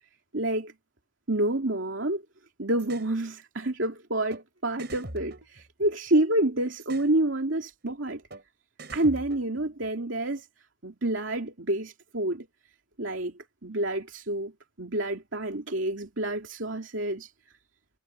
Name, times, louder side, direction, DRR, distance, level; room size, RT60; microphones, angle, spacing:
voice 1, 0.3-0.7 1.3-2.2 2.6-8.2 8.9-10.5 10.8-12.5 13.0-14.5 14.8-17.3, right 1 dB, 85° right, 2.6 m, -28 dB
sound 1, 2.8-3.1 4.3-4.4 4.8-6.2 6.8-7.1 8.3-8.4 8.8-9.9, right 2 dB, 60° right, 4.3 m, -43 dB
head